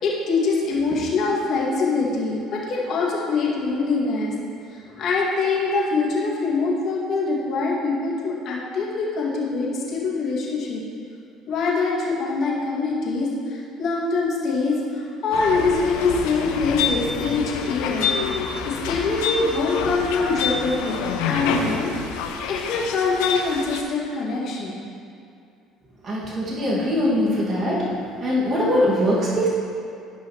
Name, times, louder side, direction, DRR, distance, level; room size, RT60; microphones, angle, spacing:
voice 1, 0.0-4.3 4.7-10.8 11.5-18.1 18.6-21.9 22.5-24.8, left 3 dB, 60° left, -5 dB, 2.2 m, -24 dB
sound 1, 15.3-23.8, left 6 dB, 85° left, 0.6 m, -27 dB
voice 2, 26.0-27.8 28.2-29.5, equal, 40° right, -6 dB, 2.1 m, -22 dB
14.0 x 5.6 x 3.1 m, 2.4 s
supercardioid pair, 75°, 0 cm